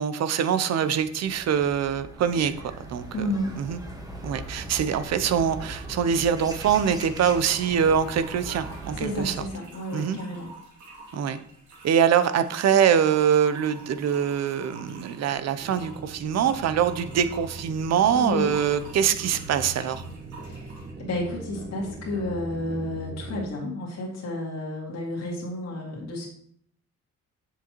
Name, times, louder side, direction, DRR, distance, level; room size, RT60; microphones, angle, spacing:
voice 1, 0.0-3.3 3.6-3.8 4.2-9.4 9.9-10.2 11.1-11.4 11.8-20.0, right 8 dB, 60° right, 12 dB, 0.7 m, -24 dB
sound 1, 0.7-9.4, right 1 dB, 10° right, 1.4 m, -40 dB
voice 2, 3.1-3.6 8.9-10.5 18.1-18.6 20.4-20.6 21.0-26.3, left 1 dB, 60° left, -4 dB, 2.1 m, -31 dB
sound 2, 6.5-20.9, right 2 dB, 75° right, 2.6 m, -48 dB
sound 3, 15.6-23.5, right 2 dB, 35° right, 1.1 m, -40 dB
7.6 x 6.6 x 3.0 m, 0.65 s
cardioid pair, 90°, 30 cm